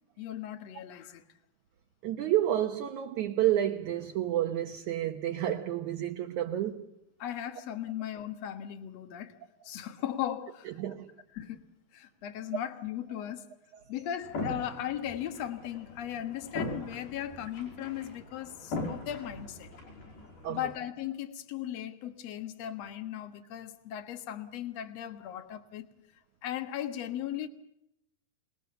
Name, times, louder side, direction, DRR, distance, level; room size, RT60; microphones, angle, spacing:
voice 1, 0.2-1.2 7.2-9.3 9.6-10.7 11.3-11.6 11.9-13.5 13.9-19.7 20.5-25.9 26.4-27.5, left 11 dB, 55° left, 2.1 m, -37 dB
voice 2, 2.0-6.9 10.8-11.1 20.4-20.6, right 12 dB, 65° right, 2.1 m, -30 dB
sound 1, 14.2-20.8, left 2 dB, 75° left, 7.5 m, -40 dB
28.0 x 20.5 x 7.0 m
omnidirectional pair, 4.4 m